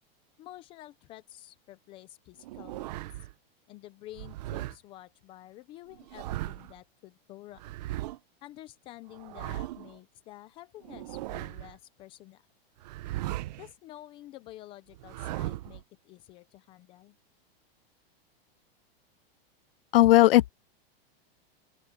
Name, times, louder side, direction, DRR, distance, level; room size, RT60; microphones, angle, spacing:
voice 1, 0.4-3.3 3.7-7.6 8.4-12.4 13.5-17.2, left 15 dB, 15° left, 0.5 m, -49 dB
sound 1, 2.4-3.3 4.1-4.8 5.9-6.8 7.6-8.2 9.1-10.0 10.8-11.8 12.8-13.7 14.9-15.8, right 16 dB, 45° right, 0.9 m, -37 dB
voice 2, 19.9-20.5, left 15 dB, 70° left, 0.6 m, -17 dB
open air
supercardioid pair, 175°, 30 cm